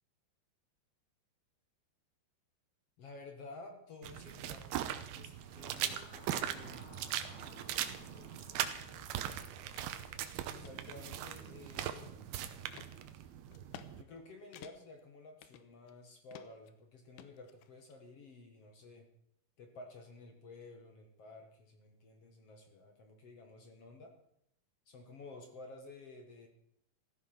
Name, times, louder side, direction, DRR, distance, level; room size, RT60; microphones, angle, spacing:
voice 1, 3.0-7.1 7.7-12.5 13.1-13.3 14.0-19.1 19.6-24.1 24.9-26.5, left 3 dB, 50° left, 4 dB, 1.9 m, -53 dB
sound 1, 4.0-14.0, right 11 dB, 75° right, 2.8 m, -40 dB
sound 2, 5.2-9.7, left 2 dB, 35° left, 3.2 m, -57 dB
sound 3, 9.8-9.9 10.3-10.8 11.3-12.2 12.7-12.9 13.5-13.9 14.2-14.3 14.5-15.0 15.4-16.0 16.3-16.7 17.2-18.0, left 11 dB, 85° left, 2.9 m, -53 dB
15.0 x 14.0 x 5.9 m, 0.74 s
omnidirectional pair, 4.7 m